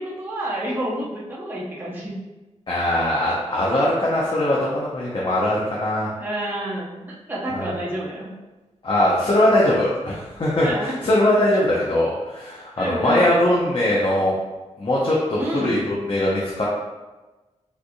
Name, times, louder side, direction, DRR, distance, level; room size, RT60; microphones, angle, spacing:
voice 1, 0.0-2.2 6.2-8.3 10.6-10.9 12.8-13.2 15.4-15.7, right 1 dB, 15° right, -6 dB, 0.8 m, -29 dB
voice 2, 2.7-6.1 7.5-7.7 8.8-14.3 14.8-16.7, left 1 dB, 45° left, -6 dB, 0.8 m, -21 dB
6.4 x 3.5 x 2.3 m, 1.1 s
wide cardioid pair, 145°, 12 cm